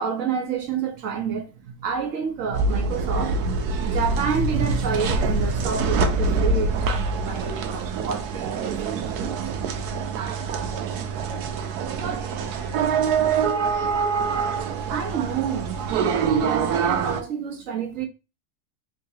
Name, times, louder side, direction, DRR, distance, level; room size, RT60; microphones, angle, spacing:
voice 1, 0.0-9.4 14.9-15.8 16.2-18.1, right 6 dB, 65° right, 1.0 m, -29 dB
sound 1, 2.5-17.2, right 4 dB, 85° right, 1.1 m, -25 dB
voice 2, 10.5-11.6 11.9-13.1, left 3 dB, 45° left, 1.4 m, -45 dB
3.9 x 2.8 x 2.7 m
omnidirectional pair, 1.7 m